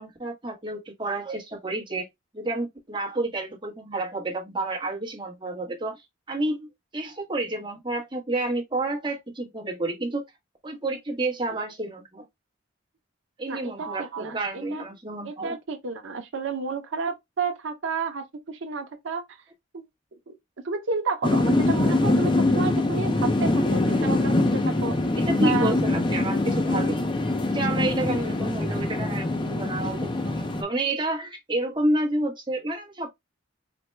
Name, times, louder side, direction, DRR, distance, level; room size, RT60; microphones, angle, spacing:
voice 1, 0.0-2.1 2.3-10.2 10.6-12.2 13.4-15.5 25.2-27.1 27.5-33.1, right 2 dB, 25° right, 0.9 m, -30 dB
voice 2, 13.5-14.8 15.2-19.2 19.7-19.8 20.3-20.4 20.6-25.0 25.4-25.7, right 4 dB, 85° right, 0.6 m, -31 dB
sound 1, 21.2-30.6, left 2 dB, 25° left, 0.5 m, -23 dB
4.2 x 2.2 x 3.1 m
head